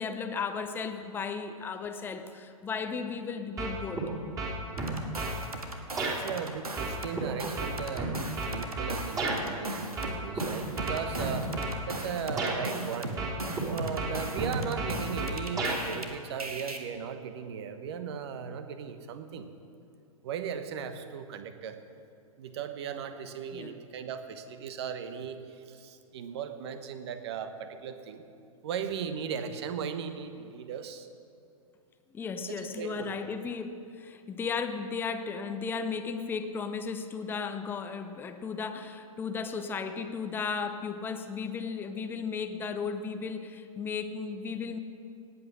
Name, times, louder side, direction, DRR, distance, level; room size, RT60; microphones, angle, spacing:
voice 1, 0.0-4.1 11.3-11.6 23.5-23.8 32.1-44.8, left 5 dB, 10° left, 7 dB, 0.7 m, -35 dB
sound 1, 3.6-4.1 4.4-5.4 6.0-6.2 6.8-9.4 10.0-10.4 10.8-11.8 12.4-12.6 13.2-13.7 14.0-15.8, right 3 dB, 20° right, 3.2 m, -32 dB
sound 2, 4.8-7.1 7.4-16.1 16.4-16.8, right 2 dB, 80° right, 1.7 m, -38 dB
voice 2, 6.0-8.1 8.5-11.5 11.9-13.2 13.7-19.5 20.2-21.8 22.4-28.2 28.6-31.1 32.5-33.1, right 7 dB, 45° right, 9 dB, 1.2 m, -37 dB
18.5 x 8.8 x 6.3 m, 2.5 s
figure-of-eight pair, 110°, 19 cm